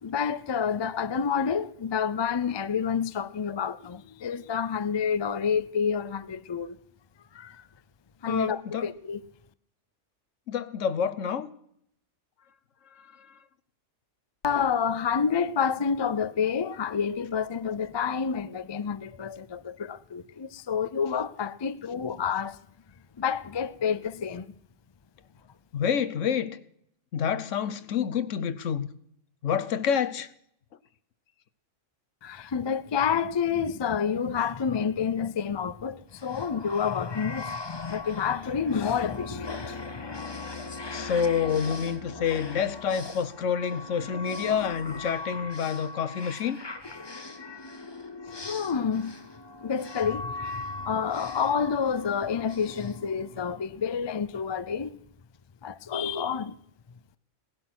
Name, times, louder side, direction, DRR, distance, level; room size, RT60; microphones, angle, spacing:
voice 1, 0.0-6.8 7.3-7.6 8.2-9.2 14.4-22.6 23.2-24.5 32.2-40.2 48.4-49.2 49.6-55.0 55.6-56.6, left 7 dB, 40° left, 0.4 m, -29 dB
voice 2, 8.3-8.9 10.5-11.5 13.0-13.1 25.7-26.6 27.1-28.9 29.4-30.3 40.9-46.6, left 7 dB, 75° left, 1.2 m, -28 dB
sound 1, 36.1-53.8, left 3 dB, 25° left, 0.9 m, -40 dB
17.5 x 11.5 x 6.1 m
omnidirectional pair, 1.3 m